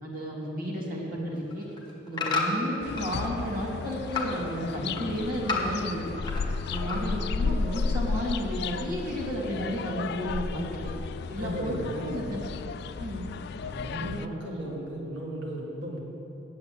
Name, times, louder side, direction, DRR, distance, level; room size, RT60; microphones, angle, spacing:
voice 1, 0.0-1.7 2.1-6.1 6.7-10.8 11.3-12.4 13.0-13.2, equal, 45° right, -4 dB, 2.2 m, -32 dB
sound 1, 1.4-3.2 3.6-4.4 4.7-6.4 6.7-7.3 7.7-7.8, left 3 dB, 25° left, 1.3 m, -32 dB
sound 2, 2.8-14.3, left 4 dB, 60° left, 0.3 m, -33 dB
voice 2, 11.4-12.2 13.6-16.0, equal, 65° right, -2 dB, 2.1 m, -35 dB
8.2 x 7.8 x 8.8 m, 3.0 s
head